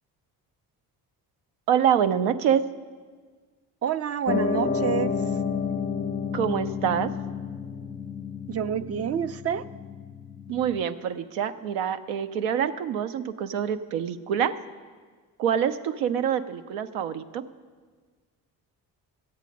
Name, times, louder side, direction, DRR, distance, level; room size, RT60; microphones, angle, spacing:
voice 1, 1.7-2.6 6.3-7.1 10.5-14.5 15.4-17.4, right 8 dB, 70° right, 9 dB, 0.6 m, -26 dB
voice 2, 3.8-5.2 8.5-9.7, right 9 dB, 30° right, 12 dB, 0.4 m, -28 dB
Piano, 4.3-10.8, left 5 dB, 15° left, 0.5 m, -30 dB
12.5 x 8.2 x 5.2 m, 1.5 s
hypercardioid pair, 45°, 49 cm